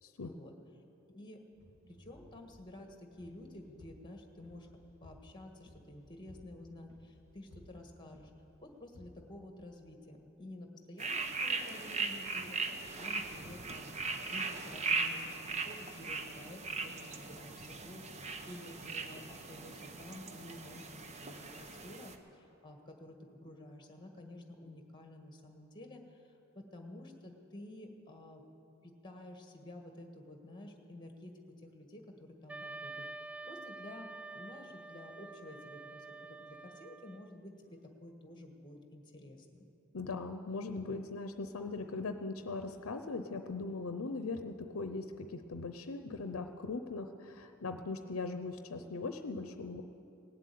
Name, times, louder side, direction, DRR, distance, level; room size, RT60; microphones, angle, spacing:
voice 1, 0.2-0.6 1.1-1.4 1.9-4.7 5.0-8.3 8.6-12.6 13.0-13.9 14.3-28.4 28.8-33.0 33.5-39.7, left 1 dB, 20° left, 3 dB, 1.6 m, -51 dB
sound 1, 1.5-10.2, left 1 dB, 80° right, 2.5 m, -60 dB
sound 2, 11.0-22.1, right 4 dB, 35° right, 0.9 m, -39 dB
Wind instrument woodwind instrument, 32.5-37.4, right 3 dB, 5° right, 0.3 m, -48 dB
voice 2, 39.9-49.8, left 3 dB, 80° left, 8 dB, 0.6 m, -40 dB
18.0 x 7.6 x 9.3 m, 2.8 s
head